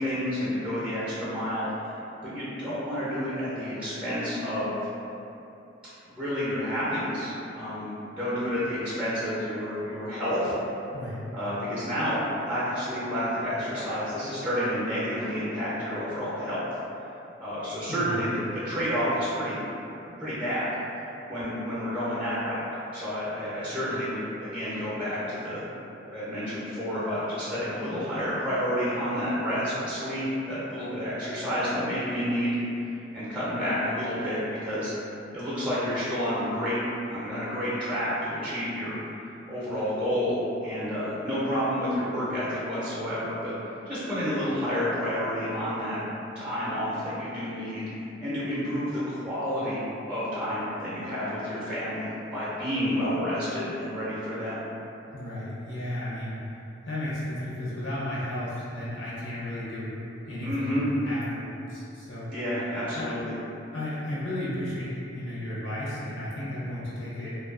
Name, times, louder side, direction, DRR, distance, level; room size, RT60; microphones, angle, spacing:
voice 1, 0.0-2.0 2.2-4.7 6.1-10.5 11.3-16.7 17.4-19.6 20.2-20.7 21.3-22.7 22.9-25.6 26.1-32.9 33.1-34.9 35.3-36.8 37.1-39.0 39.5-43.6 43.9-46.0 46.3-47.9 48.2-54.6 60.4-60.9 62.3-63.3, equal, 5° right, -10 dB, 0.5 m, -30 dB
voice 2, 17.9-18.2 55.1-56.4 56.8-59.9 60.3-62.3 62.9-63.1 63.7-67.4, left 1 dB, 80° left, -9 dB, 0.8 m, -34 dB
2.5 x 2.3 x 2.4 m, 2.8 s
head